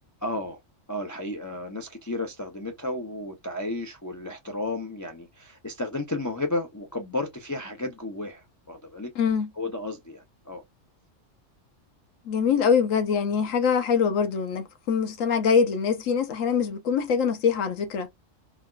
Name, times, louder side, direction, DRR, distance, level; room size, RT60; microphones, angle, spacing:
voice 1, 0.2-0.6 0.9-9.1 9.6-10.6, left 2 dB, 30° left, 0.3 m, -33 dB
voice 2, 9.2-9.5 12.3-18.1, left 6 dB, 85° left, 1.2 m, -24 dB
4.0 x 2.3 x 2.3 m
omnidirectional pair, 1.3 m